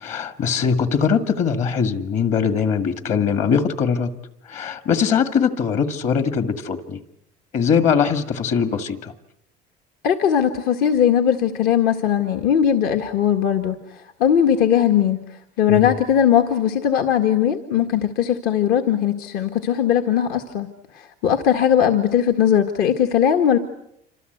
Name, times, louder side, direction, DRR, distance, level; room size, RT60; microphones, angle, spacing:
voice 1, 0.0-4.1 4.5-7.0 7.5-9.1 15.7-15.9, left 6 dB, 45° left, 9 dB, 2.1 m, -21 dB
voice 2, 10.0-13.8 14.2-15.2 15.6-20.7 21.0-23.6, left 9 dB, 65° left, 5 dB, 1.9 m, -19 dB
27.5 x 26.5 x 8.1 m, 0.77 s
cardioid pair, 165°, 17 cm